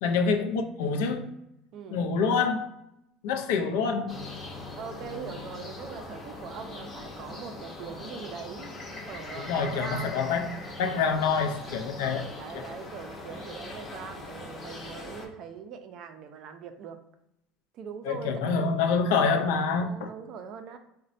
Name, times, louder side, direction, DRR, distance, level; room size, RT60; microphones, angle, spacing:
voice 1, 0.0-1.3 1.9-2.7 3.2-4.2 9.4-10.5 10.8-12.3 12.5-12.6 18.1-20.1, left 5 dB, 90° left, 0.4 m, -26 dB
voice 2, 1.7-2.1 4.7-8.7 9.1-10.2 10.6-10.8 12.0-17.0 17.7-18.8 19.8-20.8, right 7 dB, 45° right, 0.4 m, -42 dB
sound 1, 4.1-15.3, left 2 dB, 25° left, 0.6 m, -41 dB
4.0 x 2.1 x 2.5 m
cardioid pair, 145°, 0 cm